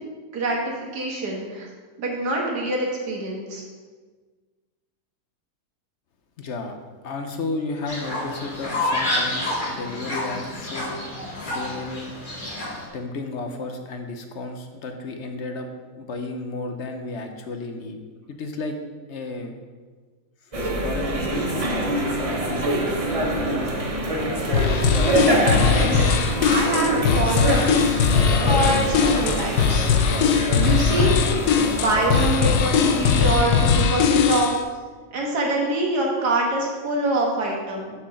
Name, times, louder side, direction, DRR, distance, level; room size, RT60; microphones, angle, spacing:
voice 1, 0.3-1.7 2.0-3.6 9.5-9.6 24.7-25.0 25.4-26.1 26.4-27.9 28.5-29.9 30.5-31.1 31.6-34.5 35.1-37.9, right 2 dB, 80° right, -1 dB, 2.0 m, -25 dB
voice 2, 6.4-6.7 7.0-10.9 11.4-12.1 12.9-15.7 16.0-18.0 18.3-18.8 19.1-19.5 20.5-21.6, left 3 dB, 55° left, 5 dB, 0.9 m, -32 dB
Fowl, 7.9-12.9, left 1 dB, 30° left, 1.8 m, -29 dB
sound 1, 20.5-33.3, right 1 dB, 30° right, 0.7 m, -25 dB
sound 2, 24.5-34.6, left 7 dB, 80° left, 1.2 m, -20 dB
7.0 x 4.8 x 6.3 m, 1.4 s
omnidirectional pair, 1.7 m